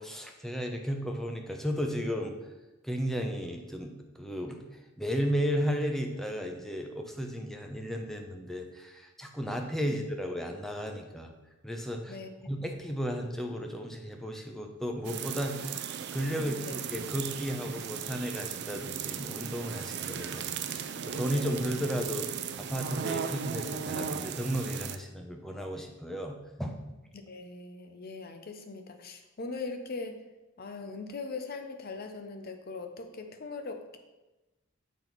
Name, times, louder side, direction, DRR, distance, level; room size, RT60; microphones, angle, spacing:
voice 1, 0.0-2.5 2.8-11.3 11.6-12.2 12.5-26.8, equal, ahead, 3 dB, 0.6 m, -34 dB
sound 1, 15.0-25.0, right 7 dB, 55° right, 0.4 m, -37 dB
voice 2, 16.3-16.7 27.3-30.2 30.6-34.0, left 3 dB, 50° left, 6 dB, 0.7 m, -40 dB
7.1 x 4.0 x 4.5 m, 1.1 s
head